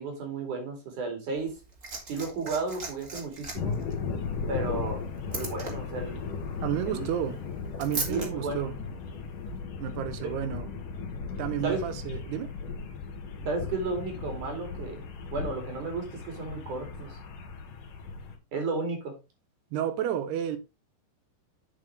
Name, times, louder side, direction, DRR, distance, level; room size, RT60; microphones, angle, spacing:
voice 1, 0.0-1.6 2.1-3.8 4.5-6.4 6.9-7.0 8.1-8.6 11.6-11.8 13.5-15.0 15.3-17.2 18.5-19.2, right 3 dB, 50° right, 3.7 m, -33 dB
Liquid, 1.4-8.3 9.4-9.5, right 3 dB, 30° right, 1.6 m, -39 dB
sound 1, 3.5-18.4, left 5 dB, 60° left, 2.9 m, -36 dB
voice 2, 6.6-7.4 7.8-8.8 9.8-10.7 11.4-12.5 19.7-20.6, right 10 dB, 75° right, 2.8 m, -31 dB
8.2 x 7.5 x 3.2 m
omnidirectional pair, 4.9 m